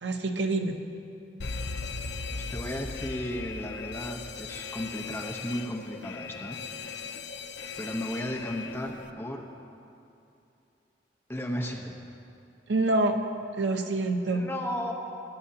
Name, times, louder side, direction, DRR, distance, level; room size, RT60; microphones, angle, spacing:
voice 1, 0.0-0.8 12.7-13.2 13.6-14.5, right 2 dB, 90° right, 5 dB, 0.9 m, -26 dB
Alarm, 1.4-9.1, left 4 dB, 80° left, 0.6 m, -38 dB
voice 2, 2.3-7.1 7.8-9.4 11.3-11.9 13.7-13.8 14.3-14.9, left 1 dB, 15° left, 0 dB, 1.0 m, -35 dB
22.0 x 10.5 x 2.8 m, 2.7 s
head